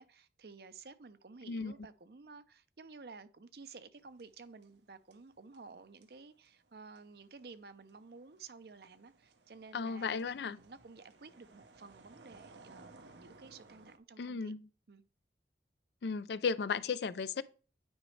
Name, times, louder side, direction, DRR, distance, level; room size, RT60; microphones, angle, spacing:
voice 1, 0.0-12.9 13.2-14.5 14.9-15.0, right 4 dB, 60° right, 0.6 m, -53 dB
sound 1, 4.0-4.9 5.1-14.0, right 3 dB, 85° right, 0.9 m, -60 dB
voice 2, 9.7-10.6 14.2-14.6 16.0-17.4, left 5 dB, 70° left, 0.4 m, -35 dB
9.4 x 5.2 x 3.2 m
head